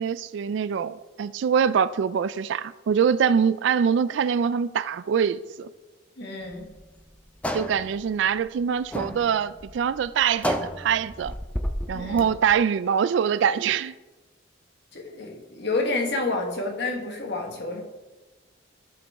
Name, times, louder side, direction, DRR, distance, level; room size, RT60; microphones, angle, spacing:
voice 1, 0.0-5.7 7.5-11.3 11.9-13.9, right 7 dB, 65° right, 0.3 m, -24 dB
voice 2, 6.2-6.7 11.9-12.3 14.9-17.8, left 3 dB, 60° left, 1.5 m, -29 dB
sound 1, 6.4-12.6, equal, 5° left, 0.5 m, -32 dB
14.0 x 5.3 x 3.5 m
head